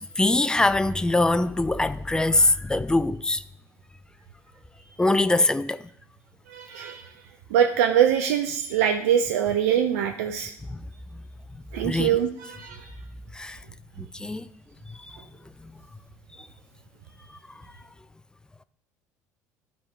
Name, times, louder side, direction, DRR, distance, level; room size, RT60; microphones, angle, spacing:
voice 1, 0.0-3.4 5.0-5.9 10.7-10.8 11.8-12.1 13.3-13.6 14.0-14.5, left 2 dB, 10° left, 0.3 m, -23 dB
voice 2, 6.5-7.1 7.5-10.5 11.7-12.9, right 9 dB, 65° right, 0.5 m, -23 dB
12.0 x 4.6 x 3.1 m
figure-of-eight pair, 60°, 9 cm